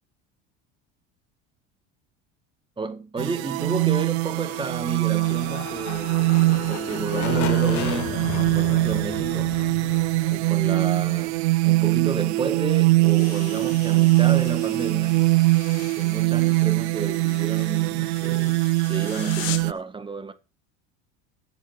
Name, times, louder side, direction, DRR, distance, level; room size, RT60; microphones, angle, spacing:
voice 1, 2.8-9.6 10.3-15.3 15.8-20.3, right 4 dB, 15° right, 1.9 m, -32 dB
sound 1, 3.2-19.7, right 21 dB, 85° right, 0.5 m, -22 dB
sound 2, 4.2-12.0, left 13 dB, 60° left, 1.4 m, -35 dB
sound 3, 13.0-19.8, left 13 dB, 80° left, 2.0 m, -41 dB
10.0 x 7.7 x 7.1 m
supercardioid pair, 105°, 32 cm